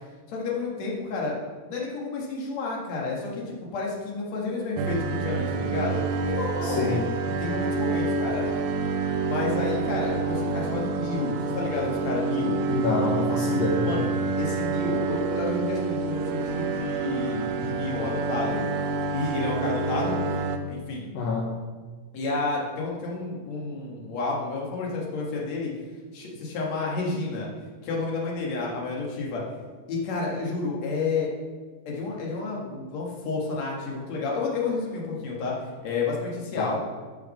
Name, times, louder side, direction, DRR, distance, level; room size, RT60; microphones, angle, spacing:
voice 1, 0.3-1.4 1.7-7.1 7.4-8.5 9.2-12.6 13.8-14.1 14.4-18.6 19.1-20.4 20.7-21.1 22.1-25.7 26.1-27.5 27.8-29.4 29.9-31.3 31.9-35.5 35.8-36.8, left 3 dB, 50° left, -3 dB, 2.2 m, -30 dB
sound 1, 4.8-20.6, right 4 dB, 85° right, 2.6 m, -28 dB
voice 2, 6.6-7.0 12.7-13.9 21.1-21.5 36.6-36.7, left 3 dB, 75° left, -2 dB, 2.0 m, -27 dB
11.5 x 6.1 x 5.9 m, 1.4 s
omnidirectional pair, 5.8 m